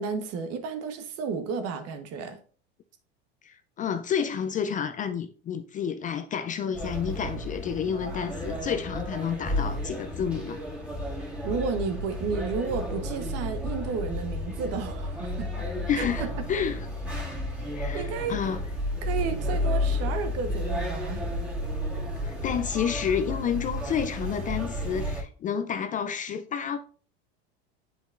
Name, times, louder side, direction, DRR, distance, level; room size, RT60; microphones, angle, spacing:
voice 1, 0.0-2.4 11.2-15.5 16.0-16.4 17.9-18.4 19.0-21.2, right 5 dB, 50° right, 1.1 m, -32 dB
voice 2, 3.4-10.6 15.9-16.9 17.7-18.6 22.2-26.8, left 7 dB, 25° left, 0.4 m, -30 dB
sound 1, 6.7-25.2, left 1 dB, 5° right, 2.1 m, -32 dB
7.8 x 5.2 x 2.5 m
supercardioid pair, 110°, 32 cm